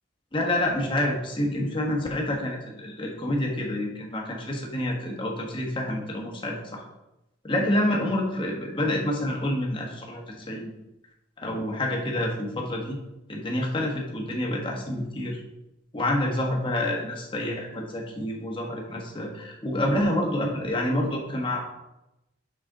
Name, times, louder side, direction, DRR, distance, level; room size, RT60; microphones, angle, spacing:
voice 1, 0.3-6.8 7.4-10.7 11.4-13.0 13.3-15.4 15.9-21.7, left 1 dB, 25° left, 0 dB, 1.1 m, -28 dB
6.2 x 5.9 x 3.7 m, 0.93 s
head